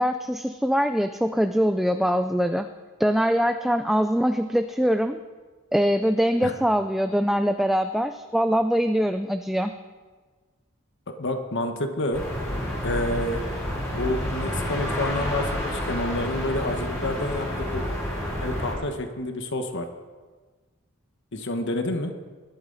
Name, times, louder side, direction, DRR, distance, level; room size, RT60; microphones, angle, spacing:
voice 1, 0.0-2.7 3.0-5.2 5.7-9.7, equal, ahead, 7 dB, 0.4 m, -23 dB
voice 2, 11.2-12.2 12.8-13.4 13.9-17.8 18.4-19.8 21.3-22.1, left 1 dB, 60° left, 6 dB, 1.3 m, -29 dB
sound 1, 12.1-18.8, left 1 dB, 15° left, 5.9 m, -29 dB
20.5 x 12.0 x 4.0 m, 1.4 s
head